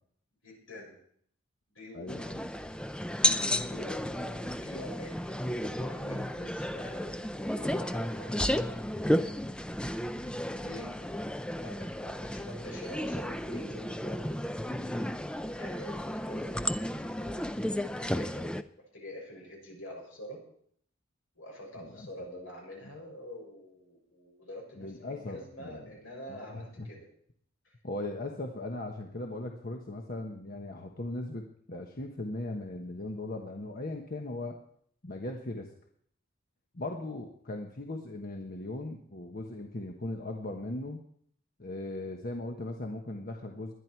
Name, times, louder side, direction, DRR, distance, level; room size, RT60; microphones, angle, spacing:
voice 1, 0.4-1.0 1.7-2.2 3.6-8.9 10.4-11.1 11.5-14.3 15.6-17.3 18.0-20.4 21.3-27.1 27.6-27.7, left 1 dB, 80° left, 0 dB, 6.7 m, -46 dB
voice 2, 1.9-2.5 21.8-22.1 24.8-26.0 26.3-26.9 27.8-34.6 35.0-35.7 36.7-41.0 41.6-43.7, left 2 dB, 45° left, 2 dB, 1.3 m, -38 dB
sound 1, 2.1-18.6, equal, 5° left, 0.5 m, -33 dB
20.0 x 11.0 x 4.6 m, 0.65 s
head